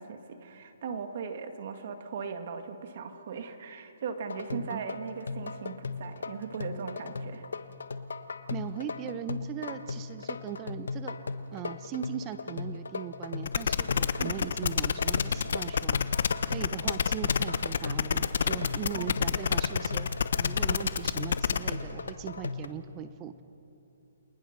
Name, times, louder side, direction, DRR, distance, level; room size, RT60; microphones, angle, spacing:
voice 1, 0.0-7.4 14.2-14.4 18.9-19.5, right 6 dB, 45° right, 7 dB, 1.9 m, -39 dB
sound 1, 4.3-22.7, left 4 dB, 80° left, 1.2 m, -38 dB
voice 2, 4.5-4.8 8.5-11.2 11.5-16.0 16.5-20.1 20.4-23.4, right 10 dB, 20° right, 12 dB, 0.8 m, -39 dB
sound 2, 13.5-21.7, left 6 dB, 65° left, 1.0 m, -28 dB
29.5 x 22.0 x 6.7 m, 3.0 s
hypercardioid pair, 160°, 0 cm